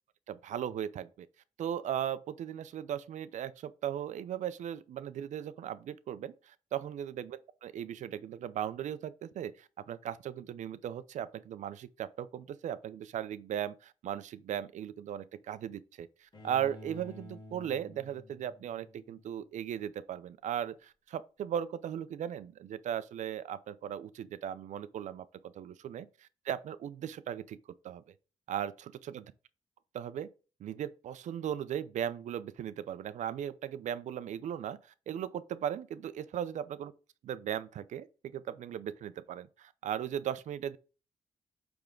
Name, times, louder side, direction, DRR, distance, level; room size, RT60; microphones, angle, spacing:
voice 1, 0.3-1.3 1.6-27.6 27.8-28.0 28.5-29.2 29.9-30.3 30.6-34.8 35.1-36.9 37.2-40.8, right 10 dB, 75° right, 0.5 m, -37 dB
Bowed string instrument, 16.3-19.4, left 2 dB, 35° left, 2.1 m, -51 dB
8.7 x 3.5 x 3.7 m
cardioid pair, 95°, 13 cm